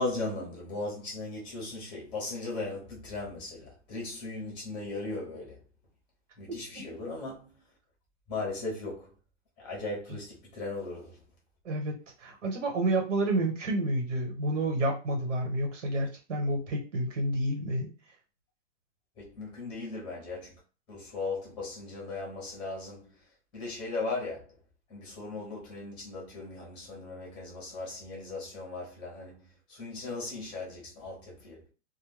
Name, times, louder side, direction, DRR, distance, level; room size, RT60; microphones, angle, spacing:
voice 1, 0.0-5.6 6.4-7.5 8.3-9.1 9.6-11.2 19.2-20.5 20.9-23.1 23.5-24.4 24.9-29.4 29.7-31.7, left 3 dB, 15° left, 0.7 m, -37 dB
voice 2, 6.5-6.8 11.6-11.9 12.2-17.9, right 1 dB, 85° right, 1.3 m, -29 dB
2.3 x 2.2 x 3.3 m
supercardioid pair, 160°, 36 cm